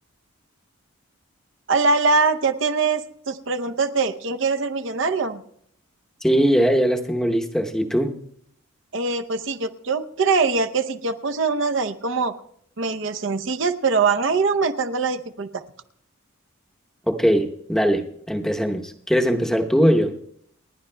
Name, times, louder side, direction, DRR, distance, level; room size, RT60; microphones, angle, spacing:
voice 1, 1.7-5.4 8.9-12.3 12.8-15.6, right 4 dB, 55° right, 10 dB, 0.7 m, -23 dB
voice 2, 6.2-8.2 17.1-20.1, equal, ahead, 3 dB, 0.8 m, -20 dB
30.0 x 11.0 x 2.2 m, 0.68 s
head